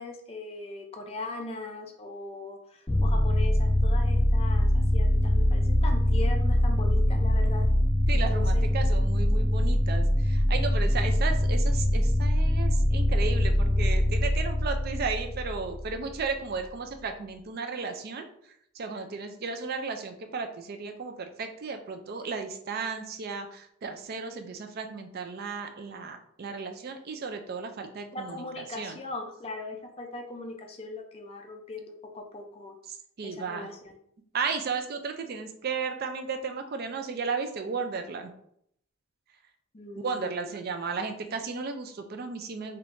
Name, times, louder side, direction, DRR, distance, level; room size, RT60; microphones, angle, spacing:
voice 1, 0.0-7.7 8.3-8.7 28.1-32.7 33.2-33.8 39.7-40.5, left 3 dB, 30° left, 2 dB, 0.4 m, -39 dB
sound 1, 2.9-16.3, left 1 dB, 10° left, 1.1 m, -23 dB
voice 2, 8.1-18.3 18.7-29.0 32.9-33.7 34.3-38.3 40.0-42.8, right 5 dB, 45° right, 6 dB, 0.4 m, -34 dB
3.5 x 2.8 x 2.5 m, 0.70 s
head